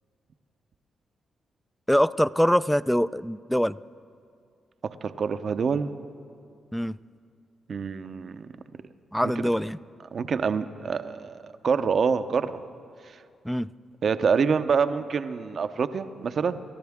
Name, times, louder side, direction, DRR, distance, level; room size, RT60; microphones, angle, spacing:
voice 1, 1.9-3.8 6.7-7.0 9.1-9.8 13.4-13.7, equal, 5° left, 17 dB, 0.4 m, -23 dB
voice 2, 4.8-6.0 7.7-8.5 9.4-9.5 10.1-12.6 14.0-16.6, right 6 dB, 60° right, 11 dB, 0.7 m, -26 dB
29.5 x 13.5 x 3.6 m, 2.4 s
supercardioid pair, 50°, 0 cm